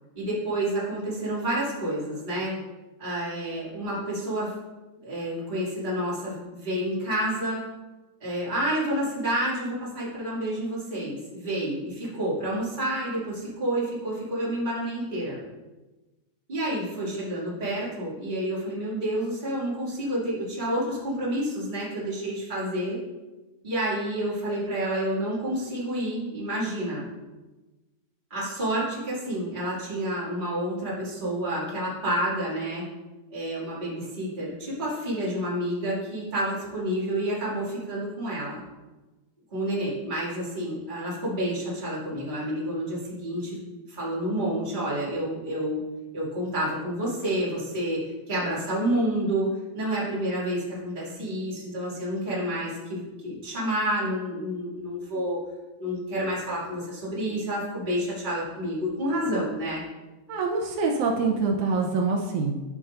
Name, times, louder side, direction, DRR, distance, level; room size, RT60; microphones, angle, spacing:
voice 1, 0.1-2.5 3.0-4.5 5.0-7.6 8.2-15.4 16.5-23.0 23.6-27.1 28.3-32.9 33.3-38.6 39.5-43.6 43.9-45.8 46.1-48.0 48.3-55.4 55.8-59.8, right 1 dB, 15° right, -8 dB, 2.0 m, -29 dB
voice 2, 60.3-62.8, right 4 dB, 80° right, 1 dB, 2.2 m, -25 dB
11.5 x 5.5 x 2.5 m, 1.1 s
omnidirectional pair, 3.5 m